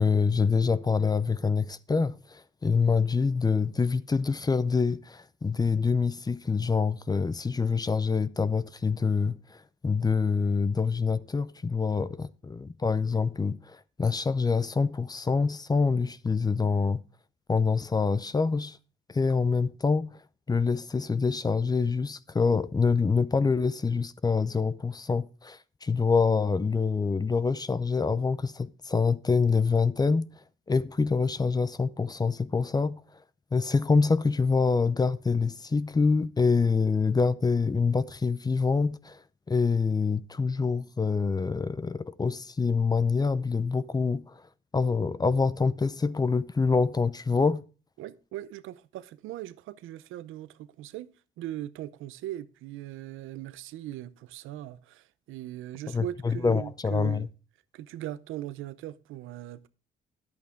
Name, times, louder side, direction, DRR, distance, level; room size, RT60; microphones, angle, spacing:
voice 1, 0.0-9.6 9.8-17.0 17.5-18.8 19.1-20.1 20.5-30.3 30.7-33.0 33.5-39.2 39.5-44.4 44.7-47.6 55.9-57.3, left 4 dB, 20° left, 0.5 m, -26 dB
voice 2, 48.0-51.1 51.4-57.3 57.7-59.7, right 13 dB, 90° right, 0.7 m, -39 dB
11.0 x 8.5 x 3.7 m
cardioid pair, 90°, 20 cm